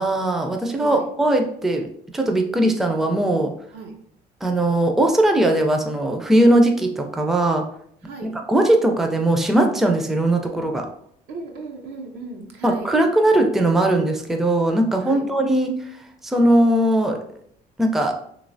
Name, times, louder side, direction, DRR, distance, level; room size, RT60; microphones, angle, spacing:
voice 1, 0.0-1.9 2.1-3.5 4.4-7.6 8.2-10.9 12.6-15.9 16.2-17.2 17.8-18.1, right 1 dB, ahead, 3 dB, 0.4 m, -19 dB
voice 2, 11.3-12.9 15.0-15.3, right 3 dB, 80° right, 2 dB, 0.7 m, -35 dB
3.1 x 3.0 x 2.6 m, 0.66 s
cardioid pair, 110°, 17 cm